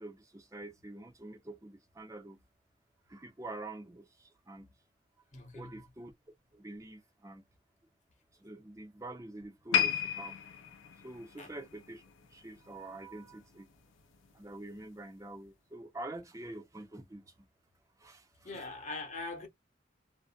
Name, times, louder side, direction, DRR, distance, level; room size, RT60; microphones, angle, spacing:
voice 1, 0.0-2.4 3.1-4.7 5.5-6.1 6.5-7.4 8.4-10.3 11.0-12.0 12.3-13.7 14.3-17.3 18.0-18.7, right 2 dB, 15° right, 0.5 m, -46 dB
voice 2, 5.3-5.8 11.4-11.5 18.4-19.5, left 3 dB, 40° left, 0.9 m, -42 dB
sound 1, 9.7-13.0 13.3-13.6 14.3-14.4, left 9 dB, 90° left, 0.5 m, -34 dB
2.5 x 2.1 x 2.4 m
head